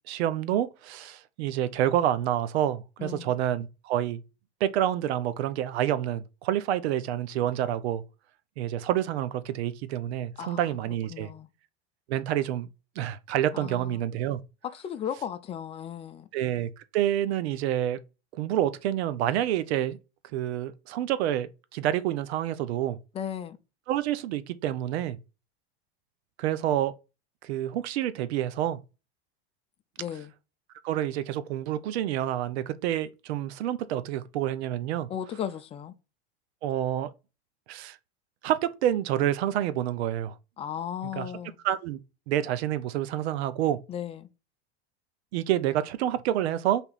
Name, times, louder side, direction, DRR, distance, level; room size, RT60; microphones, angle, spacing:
voice 1, 0.1-4.2 4.6-8.0 8.6-11.3 12.1-12.7 13.0-14.4 16.3-18.0 18.3-20.0 20.3-23.0 23.9-25.2 26.4-26.9 27.4-28.8 30.8-35.1 36.6-37.1 37.7-38.0 38.4-40.3 41.1-41.3 41.6-42.0 42.3-43.8 45.3-46.8, right 11 dB, 80° right, 0.6 m, -28 dB
voice 2, 3.0-3.3 10.4-10.8 11.1-11.5 13.5-14.0 14.6-16.3 23.1-23.6 30.0-30.3 35.1-35.9 40.6-41.6 43.9-44.3, left 9 dB, 20° left, 0.4 m, -35 dB
3.5 x 2.8 x 3.9 m
supercardioid pair, 130°, 32 cm